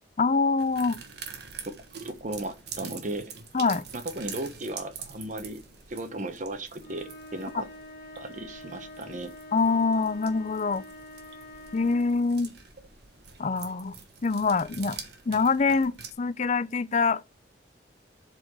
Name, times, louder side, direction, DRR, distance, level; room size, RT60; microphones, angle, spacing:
voice 1, 0.2-1.0 3.5-3.8 9.5-10.8 11.7-12.5 13.4-13.9 14.2-15.0 15.3-17.2, left 4 dB, 40° left, 0.5 m, -25 dB
sound 1, 0.6-16.1, right 6 dB, 60° right, 1.4 m, -45 dB
voice 2, 2.0-3.3 3.9-5.6 5.9-7.7 8.2-9.3, right 1 dB, 40° right, 1.1 m, -36 dB
sound 2, 6.8-12.2, left 1 dB, 55° left, 1.1 m, -46 dB
7.8 x 4.3 x 6.2 m
head